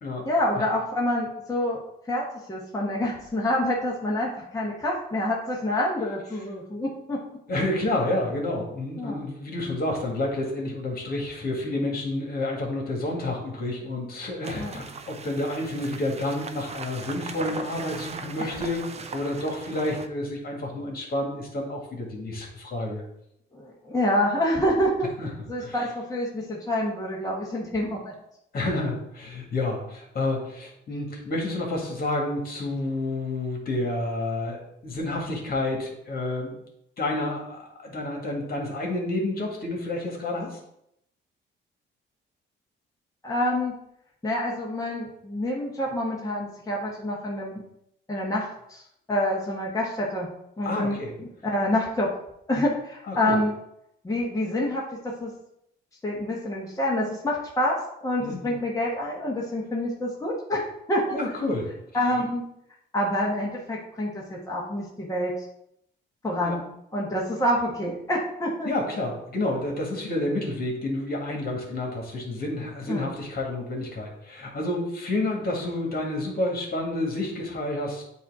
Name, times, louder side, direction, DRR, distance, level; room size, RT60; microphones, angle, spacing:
voice 1, 0.2-1.8 2.1-7.2 9.0-9.2 14.5-14.8 18.4-18.6 23.5-25.1 25.5-28.1 43.2-43.7 44.2-47.6 48.1-48.8 49.1-50.3 50.6-51.0 51.4-52.1 52.5-53.5 54.0-55.3 56.0-60.6 60.9-61.2 61.9-62.4 62.9-65.3 66.2-66.6 66.9-68.7 72.9-73.1, left 1 dB, 15° left, -3 dB, 1.3 m, -27 dB
voice 2, 7.5-18.8 19.1-23.0 25.2-25.3 25.6-25.9 28.5-36.6 37.0-40.6 50.6-51.1 53.1-53.4 58.2-58.5 61.1-61.7 66.4-66.6 68.6-78.0, left 2 dB, 50° left, 0 dB, 1.9 m, -29 dB
sound 1, 14.4-20.1, right 4 dB, 35° right, 0.6 m, -39 dB
8.0 x 2.8 x 4.7 m, 0.77 s
cardioid pair, 90°, 20 cm